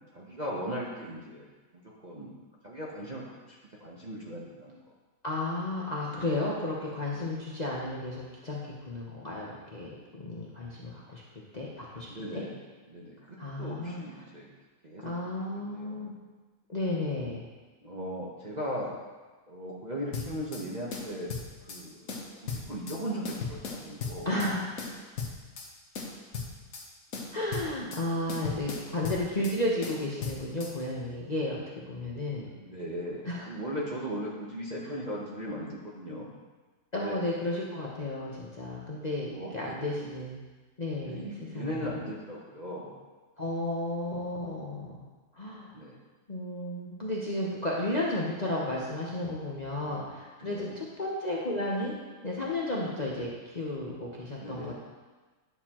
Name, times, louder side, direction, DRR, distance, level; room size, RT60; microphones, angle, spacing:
voice 1, 0.1-1.4 1.7-2.3 2.6-3.5 3.8-4.8 12.1-12.6 12.9-14.5 14.8-16.1 17.8-18.9 19.5-21.4 21.7-22.0 22.4-24.3 32.5-36.3 36.9-37.2 39.3-40.1 41.1-42.9 45.7-46.0 49.7-50.1 50.4-50.7 54.4-54.7, equal, 35° right, -5 dB, 0.9 m, -38 dB
voice 2, 5.2-11.2 11.5-12.1 12.3-12.4 13.4-14.0 15.0-16.1 16.7-17.5 24.2-24.7 27.3-31.6 31.9-32.5 33.2-33.5 36.9-40.4 40.8-41.7 43.4-45.0 45.3-45.7 46.3-51.9 52.2-54.7, left 1 dB, 30° left, -5 dB, 0.8 m, -33 dB
sound 1, 20.1-20.6 20.9-21.8 22.1-23.0 23.3-24.5 24.8-25.7 26.0-26.9 27.1-28.0 28.3-29.6 29.8-30.7, left 5 dB, 60° left, 1.4 m, -37 dB
10.5 x 6.6 x 2.9 m, 1.3 s
omnidirectional pair, 1.7 m